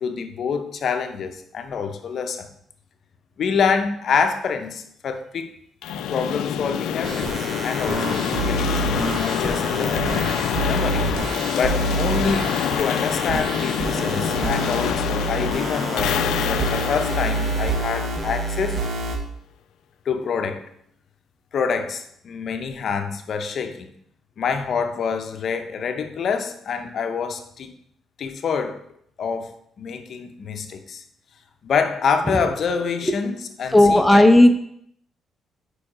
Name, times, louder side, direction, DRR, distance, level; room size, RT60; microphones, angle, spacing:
voice 1, 0.0-2.5 3.4-5.6 6.1-8.7 9.2-10.3 10.7-11.1 11.5-18.8 20.1-20.6 21.5-23.9 24.4-27.7 28.2-28.8 29.2-31.0 31.6-34.3, left 6 dB, 50° left, 7 dB, 0.7 m, -26 dB
sound 1, 5.8-18.7, left 9 dB, 85° left, 0.4 m, -26 dB
sound 2, 7.0-19.2, right 3 dB, 50° right, 1.0 m, -27 dB
voice 2, 33.7-34.6, left 1 dB, 5° left, 6 dB, 0.6 m, -13 dB
5.0 x 4.7 x 4.9 m, 0.70 s
cardioid pair, 135°, 0 cm